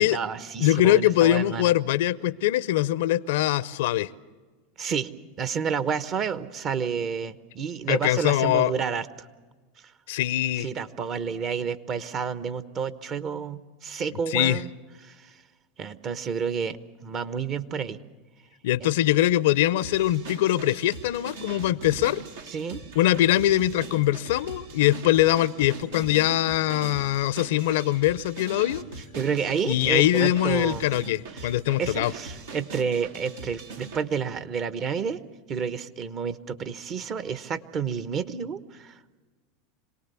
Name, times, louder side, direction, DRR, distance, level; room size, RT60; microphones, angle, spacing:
voice 1, 0.0-1.7 4.8-5.1 5.4-9.3 10.6-14.7 15.0-15.4 15.8-18.0 22.5-22.9 29.1-30.8 31.3-31.5 31.8-35.2 35.5-39.0, right 6 dB, 40° right, 12 dB, 1.0 m, -30 dB
voice 2, 0.6-4.1 7.9-8.7 10.1-10.7 14.3-14.6 18.6-22.2 23.0-28.8 29.7-32.1, left 14 dB, 70° left, 19 dB, 0.6 m, -22 dB
sound 1, 19.8-34.0, right 3 dB, 75° right, 1.6 m, -41 dB
26.0 x 18.5 x 7.0 m, 1.4 s
hypercardioid pair, 90°, 0 cm